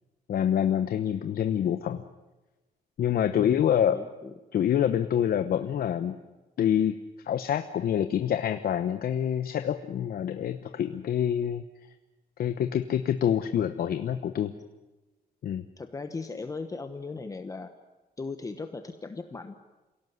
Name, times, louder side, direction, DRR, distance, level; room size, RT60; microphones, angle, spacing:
voice 1, 0.3-2.0 3.0-4.0 4.5-6.2 6.6-7.0 7.2-11.6 12.4-14.5 15.4-15.6, left 9 dB, 70° left, 8 dB, 1.0 m, -26 dB
voice 2, 3.3-4.3 15.8-17.7 18.2-19.5, left 4 dB, 20° left, 8 dB, 1.1 m, -38 dB
27.5 x 17.5 x 9.5 m, 1.1 s
wide cardioid pair, 180°, 16 cm